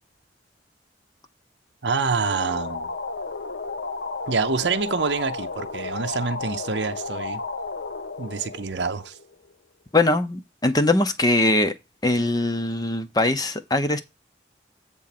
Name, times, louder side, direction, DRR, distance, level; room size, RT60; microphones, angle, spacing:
voice 1, 1.8-2.9 4.3-7.4 8.2-9.2, right 4 dB, 70° right, 0.6 m, -26 dB
sound 1, 2.1-9.5, left 4 dB, 65° left, 0.7 m, -33 dB
voice 2, 9.9-11.7 12.0-14.0, left 2 dB, 20° left, 0.7 m, -21 dB
8.4 x 3.8 x 5.8 m
head